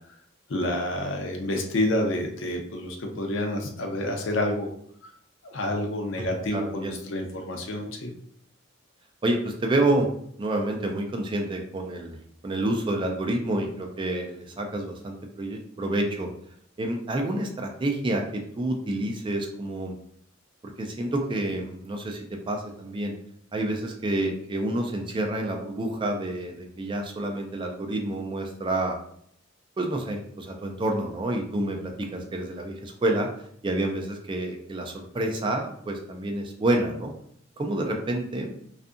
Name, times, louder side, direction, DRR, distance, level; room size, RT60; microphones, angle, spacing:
voice 1, 0.5-4.7 5.0-5.1 5.4-8.1, left 1 dB, 70° left, 3 dB, 0.5 m, -28 dB
voice 2, 6.2-7.0 9.2-10.1 10.4-12.2 12.4-16.3 16.8-20.0 20.8-23.1 23.5-29.0 29.8-33.3 33.6-37.1 37.6-38.5, right 1 dB, 25° right, 3 dB, 0.3 m, -28 dB
2.6 x 2.4 x 2.4 m, 0.66 s
head